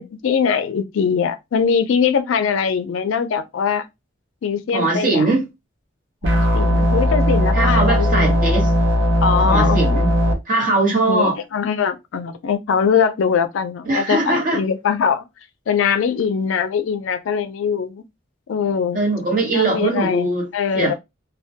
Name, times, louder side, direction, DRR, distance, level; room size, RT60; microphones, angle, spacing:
voice 1, 0.0-3.9 4.4-5.3 6.3-8.3 9.2-10.0 10.7-15.3 15.7-18.0 18.5-19.0 19.5-20.9, left 6 dB, 80° left, 0.4 m, -22 dB
voice 2, 4.7-5.5 7.5-8.7 9.4-10.1 10.5-11.4 13.9-14.6 18.9-20.5 20.7-20.9, right 2 dB, 40° right, 0.9 m, -20 dB
sound 1, 6.2-10.3, equal, 70° right, 0.6 m, -17 dB
2.2 x 2.1 x 2.7 m
head